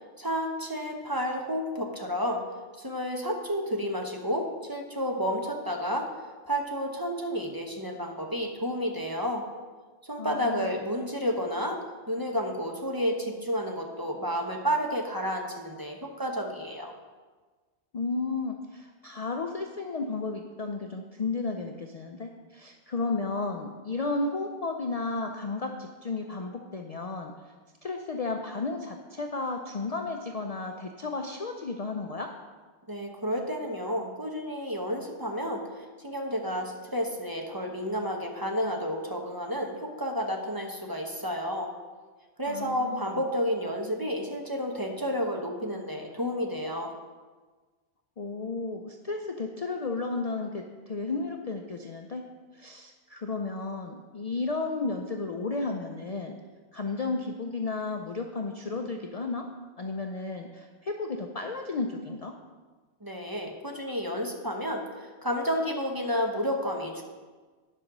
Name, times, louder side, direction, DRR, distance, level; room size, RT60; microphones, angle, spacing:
voice 1, 0.2-2.4 2.8-6.1 6.5-9.5 10.0-11.8 12.1-16.9 32.9-41.7 42.4-46.9 63.0-67.0, equal, 20° right, 1 dB, 0.9 m, -31 dB
voice 2, 10.2-10.7 17.9-27.3 27.8-32.3 42.5-43.2 48.2-52.3 52.5-56.4 56.7-59.5 59.8-62.4, left 3 dB, 45° left, 3 dB, 0.5 m, -33 dB
10.0 x 5.2 x 6.1 m, 1.4 s
omnidirectional pair, 1.1 m